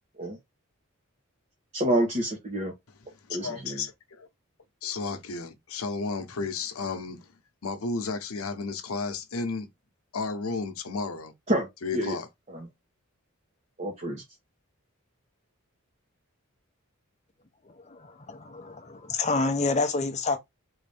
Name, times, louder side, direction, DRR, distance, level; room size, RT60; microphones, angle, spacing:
voice 1, 1.7-2.7 3.3-3.8 11.5-12.2 12.5-12.7 13.8-14.2, right 1 dB, 35° right, 0.9 m, -28 dB
voice 2, 3.3-4.3 4.8-7.3 7.6-9.7 10.1-11.3 11.8-12.3, left 4 dB, 85° left, 0.8 m, -33 dB
voice 3, 17.9-20.4, left 3 dB, 30° left, 0.6 m, -28 dB
3.9 x 2.6 x 3.3 m
head